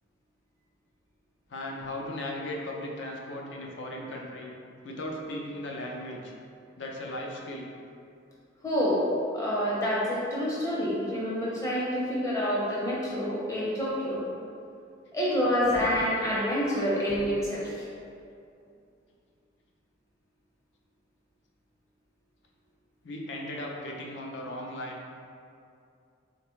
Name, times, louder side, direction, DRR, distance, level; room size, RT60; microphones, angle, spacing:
voice 1, 1.5-4.5 4.8-6.3 6.8-7.7 23.0-25.0, left 1 dB, 65° left, -1 dB, 0.5 m, -37 dB
voice 2, 8.6-9.1 9.3-14.2 15.1-17.9, equal, 15° left, -6 dB, 0.6 m, -27 dB
3.8 x 2.2 x 3.1 m, 2.5 s
head